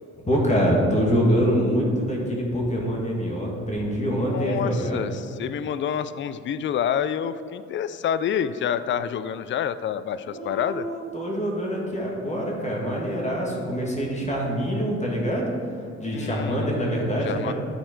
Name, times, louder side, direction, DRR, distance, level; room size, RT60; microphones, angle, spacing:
voice 1, 0.2-5.0 10.3-15.5 16.0-17.5, equal, 25° left, -2 dB, 2.1 m, -25 dB
voice 2, 4.2-10.8 16.1-16.7 17.2-17.5, left 8 dB, 40° left, 13 dB, 0.4 m, -28 dB
11.5 x 4.5 x 4.4 m, 2.6 s
cardioid pair, 90°, 30 cm